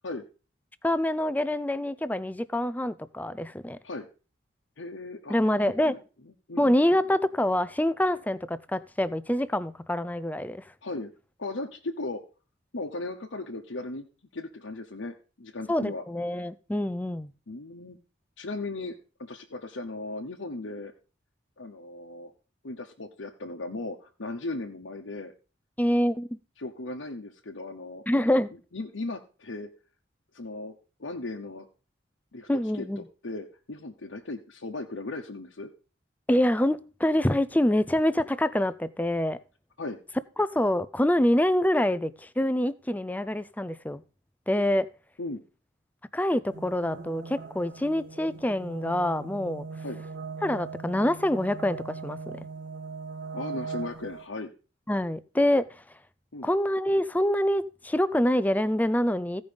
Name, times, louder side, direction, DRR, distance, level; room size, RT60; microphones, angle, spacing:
voice 1, 0.8-3.8 5.3-6.0 6.6-10.6 15.7-17.3 25.8-26.4 28.1-28.5 32.5-33.0 36.3-39.4 40.4-44.0 44.5-44.9 46.1-49.7 50.4-52.2 54.9-55.8 56.4-59.4, left 1 dB, 10° left, 15 dB, 0.4 m, -26 dB
voice 2, 4.8-6.0 6.5-6.7 10.8-11.1 11.4-12.2 12.7-14.1 14.3-16.0 17.5-18.0 18.4-18.9 19.2-20.9 21.6-22.3 22.6-25.3 26.6-28.0 28.7-29.7 30.3-30.7 31.0-31.7 32.3-32.5 32.7-32.9 33.2-35.7 39.8-40.0 45.2-45.4 49.8-50.0 53.3-54.5 56.3-56.5, left 2 dB, 80° left, 0 dB, 1.0 m, -37 dB
sound 1, 46.5-54.2, right 5 dB, 75° right, 1.7 m, -40 dB
15.5 x 5.4 x 5.2 m, 0.35 s
head